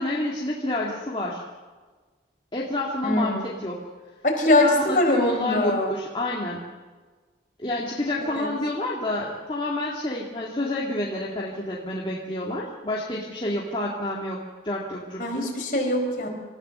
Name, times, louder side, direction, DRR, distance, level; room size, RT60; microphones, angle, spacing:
voice 1, 0.0-1.4 2.5-3.9 4.6-6.6 7.6-15.5, left 1 dB, 25° left, -4 dB, 2.2 m, -29 dB
voice 2, 3.0-3.5 4.2-6.0 8.4-8.5 15.2-16.3, left 1 dB, 45° left, 1 dB, 4.6 m, -22 dB
27.5 x 14.5 x 6.9 m, 1.4 s
head